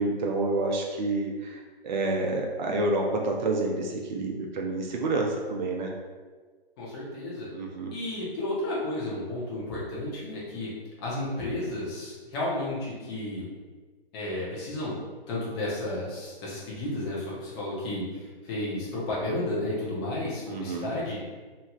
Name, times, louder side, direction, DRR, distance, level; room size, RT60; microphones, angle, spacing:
voice 1, 0.0-5.9 7.5-7.9 20.5-20.9, right 2 dB, 50° right, 1 dB, 0.5 m, -28 dB
voice 2, 6.8-7.5 7.9-10.7 11.0-13.5 14.1-15.0 15.3-21.2, left 1 dB, 25° left, -7 dB, 0.9 m, -32 dB
3.1 x 2.7 x 2.4 m, 1.4 s
figure-of-eight pair, 135°, 31 cm